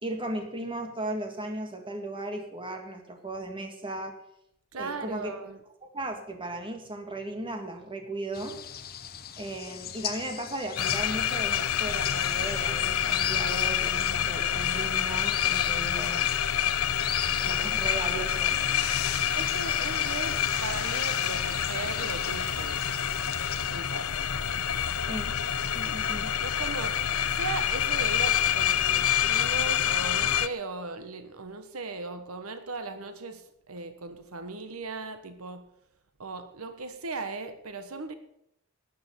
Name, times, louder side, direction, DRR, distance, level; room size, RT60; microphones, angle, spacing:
voice 1, 0.0-4.1 4.8-5.3 5.9-8.5 9.4-16.3 17.4-18.6 25.1-25.4 25.7-26.4, right 1 dB, 25° right, 4 dB, 2.0 m, -36 dB
voice 2, 4.7-5.6 19.3-22.8 23.7-24.1 24.6-24.7 25.8-25.9 26.4-27.0 27.3-35.7 36.2-38.1, right 3 dB, 85° right, 9 dB, 1.3 m, -37 dB
sound 1, 8.3-23.8, left 9 dB, 45° left, 0.9 m, -39 dB
sound 2, 10.8-30.5, left 9 dB, 85° left, 0.7 m, -27 dB
sound 3, 18.3-28.5, right 5 dB, 40° right, 1.5 m, -48 dB
12.5 x 9.7 x 6.8 m, 0.78 s
head